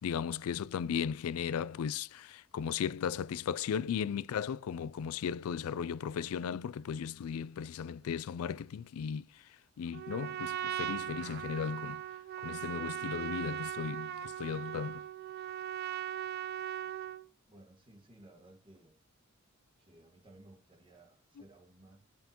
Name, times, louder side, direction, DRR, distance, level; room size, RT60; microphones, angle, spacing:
voice 1, 0.0-9.4 9.8-12.0 12.4-15.0, left 7 dB, 85° left, 0.3 m, -36 dB
Trumpet, 9.9-17.3, right 11 dB, 45° right, 0.4 m, -39 dB
voice 2, 17.4-19.0 19.8-22.0, right 1 dB, 25° right, 1.7 m, -58 dB
11.0 x 5.6 x 2.9 m
head